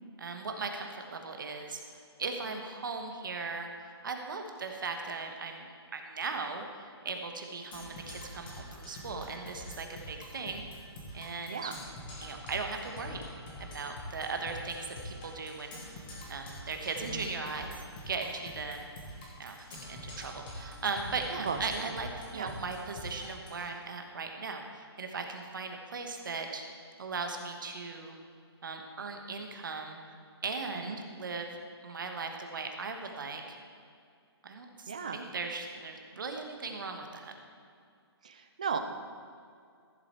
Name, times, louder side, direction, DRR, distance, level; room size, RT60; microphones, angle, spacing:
voice 1, 0.2-1.8 2.2-6.6 7.0-10.6 11.1-11.7 12.2-13.3 13.6-17.7 18.1-18.8 19.4-26.6 27.0-28.2 28.6-30.0 30.4-31.6 31.8-33.6 34.4-37.3, right 4 dB, 50° right, 4 dB, 1.3 m, -38 dB
Percussion, 7.7-23.7, left 1 dB, 20° left, 1.4 m, -45 dB
voice 2, 21.4-21.9 22.3-22.6 30.9-31.0 34.9-35.2 38.2-38.8, right 6 dB, 15° right, 7 dB, 0.3 m, -36 dB
14.0 x 7.5 x 4.7 m, 2.3 s
hypercardioid pair, 175°, 14 cm